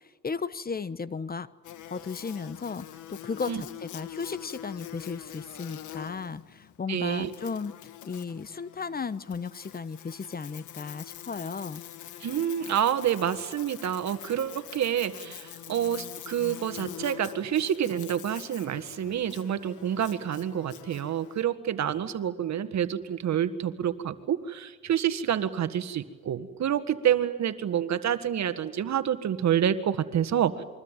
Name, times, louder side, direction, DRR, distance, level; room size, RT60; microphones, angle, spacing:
voice 1, 0.2-1.5 1.9-7.7 8.0-11.8, left 5 dB, 30° left, 16 dB, 1.1 m, -35 dB
Buzz, 1.6-21.4, left 11 dB, 75° left, 1.5 m, -45 dB
voice 2, 6.9-7.3 12.2-30.6, right 9 dB, 65° right, 11 dB, 1.7 m, -28 dB
28.0 x 23.0 x 9.1 m, 1.4 s
cardioid pair, 90°, 30 cm